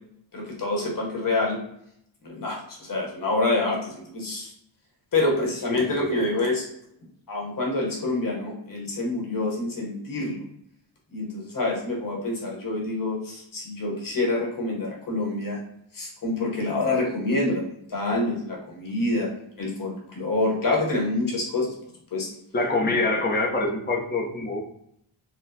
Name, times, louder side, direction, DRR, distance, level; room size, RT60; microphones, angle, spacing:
voice 1, 0.3-1.6 2.2-4.5 5.1-6.6 7.3-10.4 11.1-15.6 15.9-19.3 19.6-21.7 22.1-22.3 22.8-23.0, left 2 dB, 40° left, -1 dB, 1.1 m, -27 dB
voice 2, 5.7-6.2 22.5-24.6, left 2 dB, 20° left, 0 dB, 0.7 m, -25 dB
4.0 x 2.2 x 2.7 m, 0.74 s
cardioid pair, 115°, 48 cm